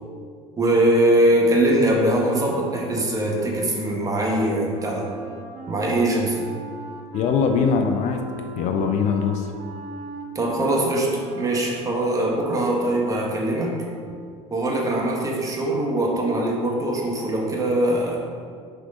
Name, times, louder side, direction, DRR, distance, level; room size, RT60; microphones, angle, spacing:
voice 1, 0.6-5.1 5.7-6.5 10.3-13.8 14.5-18.2, right 1 dB, 25° right, -2 dB, 1.8 m, -22 dB
Wind instrument woodwind instrument, 2.4-14.4, right 4 dB, 55° right, 1.2 m, -39 dB
voice 2, 7.1-8.2 8.6-9.5, left 6 dB, 55° left, 5 dB, 0.7 m, -21 dB
6.6 x 4.9 x 5.1 m, 2.1 s
supercardioid pair, 90°, 15 cm